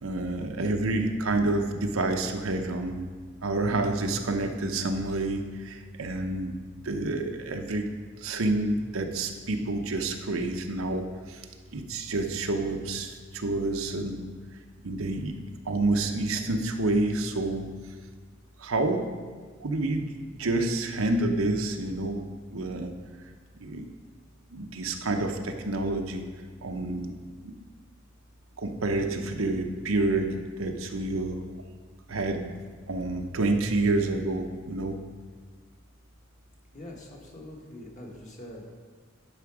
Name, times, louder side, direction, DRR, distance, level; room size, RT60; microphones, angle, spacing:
voice 1, 0.0-3.1 3.4-7.9 8.2-11.5 11.7-14.3 14.8-15.4 15.6-17.7 18.6-19.1 19.6-22.2 22.5-22.9 23.6-23.9 24.5-26.2 26.6-27.1 27.4-27.5 28.6-31.4 32.1-32.5 32.9-35.0, right 2 dB, 90° right, 5 dB, 0.8 m, -28 dB
voice 2, 36.7-38.7, left 1 dB, 35° left, 0 dB, 1.5 m, -44 dB
10.5 x 5.9 x 4.8 m, 1.5 s
head